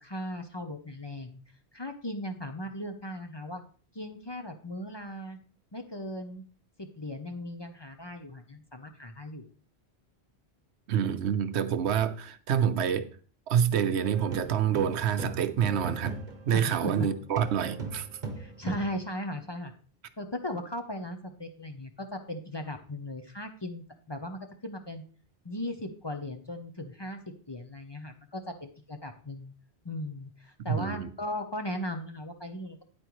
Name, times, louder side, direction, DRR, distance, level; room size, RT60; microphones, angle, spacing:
voice 1, 0.0-1.4 1.7-3.6 3.9-5.4 5.7-6.4 6.8-9.5 16.5-17.1 18.4-19.7 20.2-25.0 25.4-27.2 27.5-29.5 29.8-32.8, left 1 dB, 25° left, 0.7 m, -37 dB
voice 2, 10.9-13.1 13.5-16.2 16.5-18.1 30.7-31.1, right 8 dB, 80° right, 1.0 m, -27 dB
sound 1, 14.0-17.1 17.4-19.0, right 4 dB, 45° right, 1.1 m, -37 dB
9.4 x 8.7 x 3.1 m
omnidirectional pair, 1.1 m